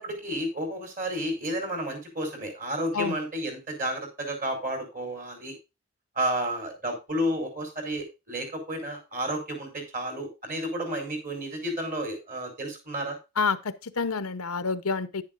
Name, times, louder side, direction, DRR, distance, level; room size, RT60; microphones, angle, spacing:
voice 1, 0.0-5.6 6.2-13.2, right 1 dB, 35° right, 5.1 m, -31 dB
voice 2, 13.4-15.2, left 5 dB, 85° left, 0.9 m, -28 dB
10.5 x 10.5 x 2.6 m
head